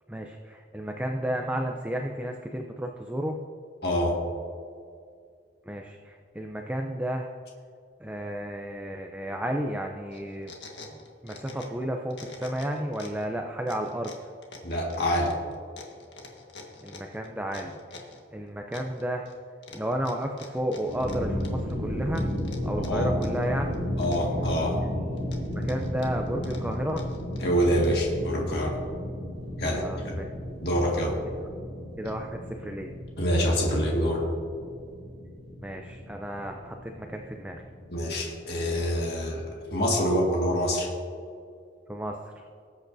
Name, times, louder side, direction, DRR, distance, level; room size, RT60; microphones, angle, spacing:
voice 1, 0.1-3.4 5.7-7.3 8.0-10.5 11.2-14.1 16.8-18.0 18.3-19.3 19.7-22.3 22.6-23.7 25.6-27.1 29.7-30.3 32.0-32.9 35.6-37.7 41.9-42.2, equal, 10° right, 2 dB, 0.5 m, -32 dB
voice 2, 3.8-4.2 14.6-15.3 22.8-23.1 24.0-24.8 27.4-28.8 29.6-29.9 30.6-31.1 33.2-34.2 37.9-39.4 39.7-40.9, equal, 60° left, -2 dB, 1.9 m, -25 dB
sound 1, 10.1-11.8 12.1-13.3 13.7-18.2 18.7-19.4 19.6-21.7 22.2-23.5 23.7-24.7 25.2-28.1, left 3 dB, 75° left, 1.6 m, -46 dB
sound 2, 20.8-39.6, left 1 dB, 60° right, 2.2 m, -34 dB
19.0 x 8.4 x 2.7 m, 2.3 s
head